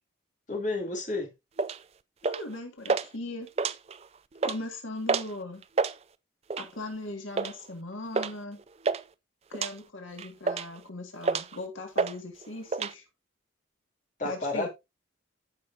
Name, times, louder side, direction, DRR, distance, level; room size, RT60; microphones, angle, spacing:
voice 1, 0.5-1.3 14.2-14.7, left 2 dB, 40° left, 2.9 m, -31 dB
sound 1, 1.6-1.8 2.2-2.5 2.9-3.1 3.5-4.1 4.4-4.6 5.1-5.3 5.6-6.0 6.5-6.8 7.4-7.6 8.2-8.3 8.6-9.0 9.5-9.7 10.2-10.8 11.2-11.6 12.0-12.2 12.4-12.9, right 4 dB, 30° right, 0.4 m, -28 dB
voice 2, 2.2-3.5 4.4-5.6 6.6-8.6 9.5-13.0 14.2-14.7, left 2 dB, 90° left, 2.0 m, -39 dB
14.5 x 5.4 x 2.7 m
head